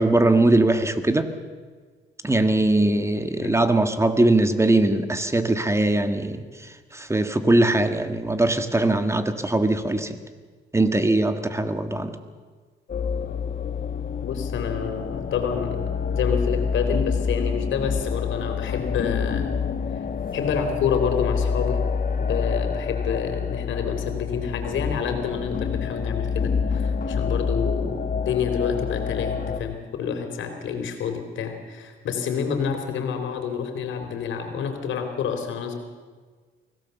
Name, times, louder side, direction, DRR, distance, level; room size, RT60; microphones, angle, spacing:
voice 1, 0.0-1.3 2.2-6.4 6.9-10.2 10.7-12.2, right 2 dB, 15° right, 9 dB, 1.8 m, -21 dB
sound 1, 12.9-29.6, left 6 dB, 45° left, 1.3 m, -27 dB
voice 2, 14.2-19.5 20.3-21.8 22.2-35.7, left 7 dB, 75° left, 5 dB, 3.7 m, -28 dB
24.0 x 17.0 x 7.1 m, 1.5 s
cardioid pair, 90°, 20 cm